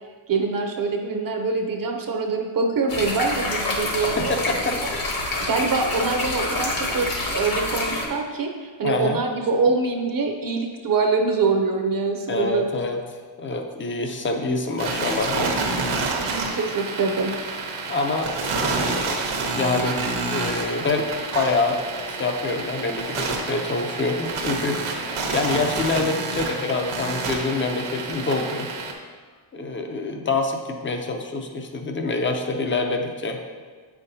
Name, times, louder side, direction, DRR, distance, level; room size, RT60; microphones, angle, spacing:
voice 1, 0.3-4.3 4.8-4.9 5.4-12.8 16.2-17.3 30.1-30.2, right 4 dB, 45° right, 3 dB, 0.7 m, -24 dB
sound 1, 2.9-8.1, left 2 dB, 45° left, 1.2 m, -27 dB
voice 2, 4.2-4.8 8.8-9.2 12.3-13.0 13.4-15.5 17.9-19.0 19.6-21.8 22.1-24.8 25.3-28.7 29.5-33.4, left 3 dB, 25° left, 4 dB, 0.6 m, -26 dB
sound 2, 14.8-28.9, right 3 dB, 80° right, 1.1 m, -28 dB
8.0 x 5.8 x 2.7 m, 1.5 s
wide cardioid pair, 140°, 48 cm